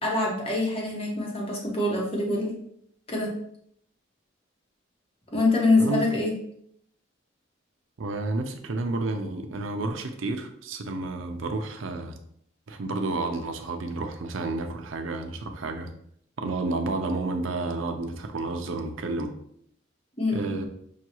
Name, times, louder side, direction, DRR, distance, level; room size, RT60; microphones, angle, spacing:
voice 1, 0.0-2.6 3.1-3.3 5.3-6.3 20.2-20.5, left 2 dB, 30° left, -2 dB, 1.0 m, -25 dB
voice 2, 8.0-12.2 12.7-15.9 16.4-19.3 20.3-20.7, right 2 dB, 80° right, 5 dB, 0.5 m, -30 dB
5.6 x 2.3 x 2.9 m, 0.68 s
head